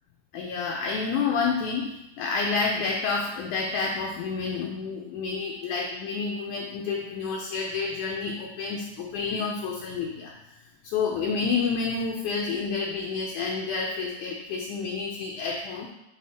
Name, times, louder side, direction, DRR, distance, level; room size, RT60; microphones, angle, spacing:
voice 1, 0.3-10.6 10.8-15.9, left 5 dB, 75° left, -1 dB, 1.8 m, -29 dB
9.2 x 3.8 x 4.3 m, 0.88 s
omnidirectional pair, 4.3 m